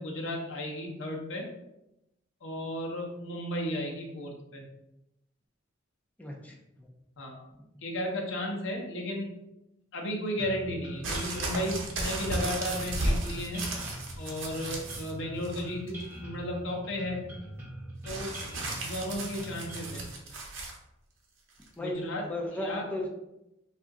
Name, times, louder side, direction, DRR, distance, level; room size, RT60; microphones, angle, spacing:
voice 1, 0.0-1.5 2.4-4.6 7.2-7.4 7.8-9.4 9.9-13.7 14.1-17.3 18.0-18.4 18.8-20.1 21.8-22.2 22.6-22.8, equal, 65° left, 0 dB, 0.7 m, -34 dB
voice 2, 6.2-6.9 21.8-23.1, left 1 dB, 5° left, -1 dB, 0.5 m, -35 dB
sound 1, 10.4-20.0, equal, 10° right, 0.9 m, -43 dB
sound 2, 11.0-15.1 15.4-16.0 18.1-20.8 21.6-21.7, right 2 dB, 70° right, 0.7 m, -34 dB
2.7 x 2.4 x 3.5 m, 0.89 s
head